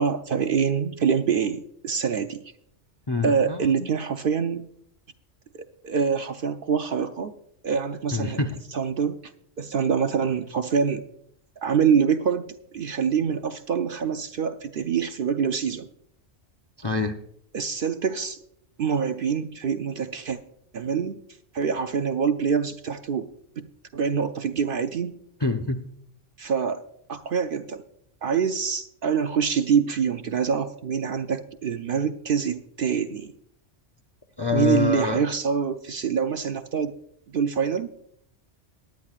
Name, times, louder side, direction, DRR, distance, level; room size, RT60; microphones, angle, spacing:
voice 1, 0.0-2.4 3.2-4.7 5.5-7.3 7.6-8.4 8.7-9.3 9.6-11.0 11.6-15.9 17.5-18.4 18.8-20.4 20.7-21.2 21.5-23.3 23.6-23.7 23.9-25.2 26.4-27.8 28.2-33.3 34.5-37.0 37.3-37.9, right 6 dB, 55° right, 9 dB, 0.7 m, -25 dB
voice 2, 3.1-3.9 8.1-8.6 16.8-17.2 25.4-25.8 34.4-35.2, left 4 dB, 30° left, 4 dB, 0.5 m, -26 dB
18.5 x 10.5 x 2.4 m, 0.70 s
omnidirectional pair, 1.3 m